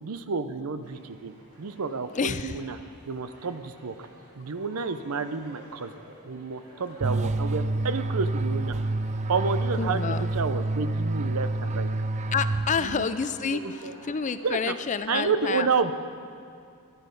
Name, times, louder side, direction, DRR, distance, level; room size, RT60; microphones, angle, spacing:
voice 1, 0.0-2.8 3.1-4.1 4.4-5.9 6.2-8.7 9.3-11.9 12.8-13.1 13.5-13.9 14.4-14.7 15.1-15.9, right 5 dB, 70° right, 11 dB, 0.6 m, -30 dB
sound 1, 0.8-14.6, right 1 dB, 90° right, 2.3 m, -53 dB
voice 2, 2.1-2.6 9.8-10.3 12.3-15.7, left 5 dB, 35° left, 12 dB, 0.4 m, -29 dB
sound 2, 7.0-13.1, right 2 dB, 30° right, 0.3 m, -28 dB
13.0 x 11.5 x 5.2 m, 2.4 s
head